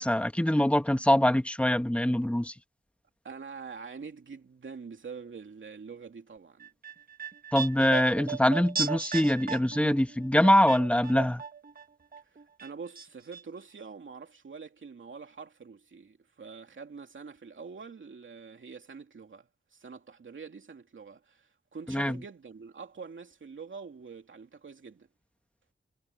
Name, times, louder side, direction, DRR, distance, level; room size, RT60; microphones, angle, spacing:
voice 1, 0.0-2.6 7.5-11.4 21.9-22.2, left 1 dB, 5° left, 1.9 m, -24 dB
voice 2, 3.2-6.7 12.2-25.1, right 5 dB, 70° right, 2.8 m, -45 dB
sound 1, 6.6-11.8 12.1-13.1 13.3-13.4, right 6 dB, 45° right, 1.4 m, -36 dB
cardioid pair, 55°, 21 cm